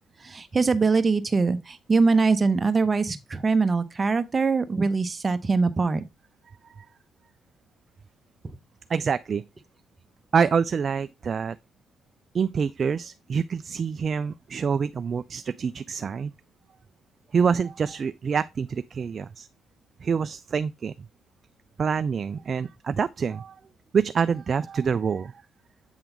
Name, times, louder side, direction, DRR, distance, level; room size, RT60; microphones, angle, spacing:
voice 1, 0.2-6.0 8.4-8.5, right 4 dB, 30° right, 0.9 m, -23 dB
voice 2, 6.5-6.9 8.9-9.4 10.3-11.6 12.3-16.3 17.3-19.5 20.0-21.1 21.8-23.6 23.9-25.4, right 6 dB, 45° right, 0.3 m, -26 dB
8.1 x 3.9 x 4.5 m
cardioid pair, 90°, 0 cm